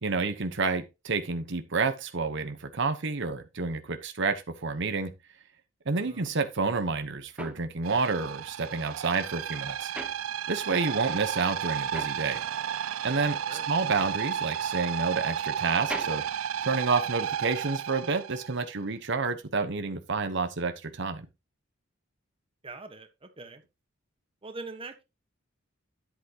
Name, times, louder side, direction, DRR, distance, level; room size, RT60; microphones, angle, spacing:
voice 1, 0.0-5.1 5.9-9.9 10.5-12.4 13.0-13.4 13.7-16.2 16.6-21.3, right 4 dB, 60° right, 1.0 m, -29 dB
voice 2, 6.0-6.3 10.7-11.1 13.5-13.7 22.6-23.6 24.4-25.0, right 3 dB, 25° right, 1.3 m, -43 dB
sound 1, 7.1-10.9 11.2-17.4, right 1 dB, 5° right, 1.1 m, -44 dB
sound 2, 7.8-18.6, right 9 dB, 80° right, 0.4 m, -33 dB
10.5 x 8.2 x 3.0 m
head